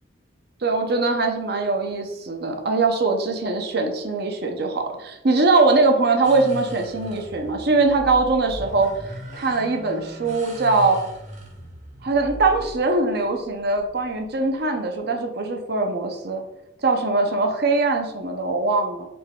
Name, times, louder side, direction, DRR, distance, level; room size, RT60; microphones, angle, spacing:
voice 1, 0.6-8.9 9.3-11.0 12.0-16.4 16.8-19.1, right 3 dB, 60° right, 4 dB, 0.7 m, -22 dB
sound 1, 6.2-14.6, equal, 40° right, 1.6 m, -39 dB
4.2 x 3.2 x 3.6 m, 0.88 s
head